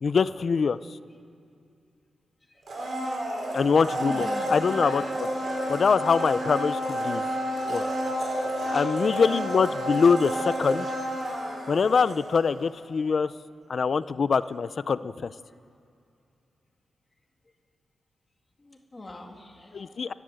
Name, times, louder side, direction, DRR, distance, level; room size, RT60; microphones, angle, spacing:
voice 1, 0.0-0.8 3.5-5.3 5.7-7.2 7.7-7.8 8.7-10.9 11.7-13.3 13.7-15.3 19.7-20.1, left 5 dB, 45° left, 15 dB, 0.5 m, -24 dB
Domestic sounds home sounds, 2.6-12.6 12.9-13.0, equal, 45° right, 4.9 m, -30 dB
voice 2, 4.1-4.5 8.6-8.9 18.6-20.1, left 2 dB, 20° left, 2 dB, 2.3 m, -44 dB
29.5 x 11.5 x 7.7 m, 2.6 s
wide cardioid pair, 170°, 0 cm